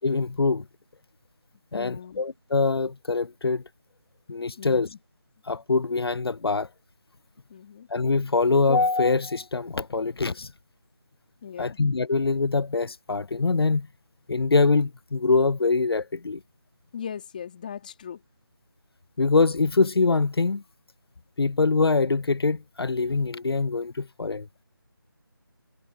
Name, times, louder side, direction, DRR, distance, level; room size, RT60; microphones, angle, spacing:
voice 1, 0.0-0.6 1.7-3.6 4.3-4.9 5.4-6.7 7.9-10.5 11.6-13.9 14.3-16.4 19.2-20.6 21.4-24.5, left 4 dB, 85° left, 0.6 m, -24 dB
voice 2, 1.7-2.2 4.6-5.0 7.5-7.9 11.4-11.8 16.9-18.2, left 8 dB, 20° left, 3.2 m, -38 dB
figure-of-eight pair, 170°, 13 cm